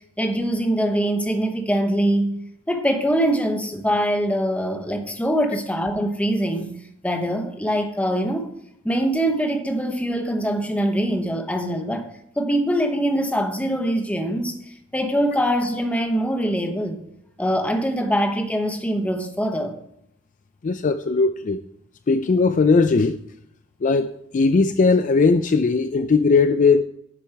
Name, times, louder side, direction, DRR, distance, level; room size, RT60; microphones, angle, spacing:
voice 1, 0.2-2.4 2.7-6.7 7.0-8.5 8.8-12.1 12.4-14.6 14.9-17.0 17.4-19.7, equal, 5° left, 1.0 m, -23 dB
voice 2, 20.6-21.6 22.1-23.2 23.8-26.8, left 4 dB, 35° left, 0.4 m, -18 dB
10.0 x 7.2 x 4.6 m
head